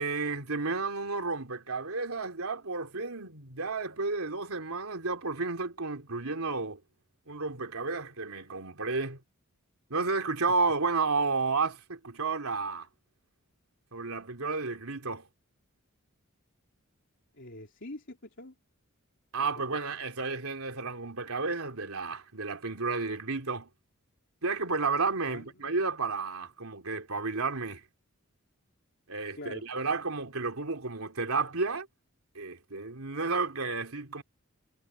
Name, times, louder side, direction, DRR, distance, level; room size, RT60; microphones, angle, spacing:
voice 1, 0.0-6.8 7.3-9.2 9.9-12.9 13.9-15.3 19.3-23.7 24.4-27.8 29.1-31.9 32.3-34.2, right 4 dB, 85° right, 3.1 m, -32 dB
voice 2, 17.3-18.6 19.4-19.7 25.3-25.8 29.4-29.6, left 1 dB, 60° left, 3.7 m, -45 dB
head